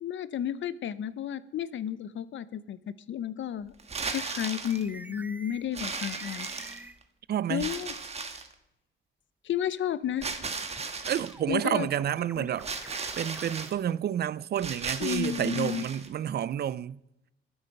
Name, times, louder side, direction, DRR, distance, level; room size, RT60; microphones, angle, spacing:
voice 1, 0.0-2.8 3.1-3.7 4.1-6.5 7.5-7.9 9.4-10.3 11.5-11.9 12.4-12.5 15.0-15.8, left 10 dB, 70° left, 0.8 m, -32 dB
sound 1, 3.8-4.8 5.7-7.0 7.6-8.5 10.2-11.3 12.6-13.7 14.6-16.1, right 4 dB, 30° right, 1.3 m, -36 dB
sound 2, 4.7-7.0 10.7-13.7, right 2 dB, 10° right, 0.6 m, -47 dB
voice 2, 7.3-7.7 11.1-12.7 13.2-17.0, right 10 dB, 50° right, 0.5 m, -30 dB
23.0 x 8.1 x 5.4 m
wide cardioid pair, 160°, 20 cm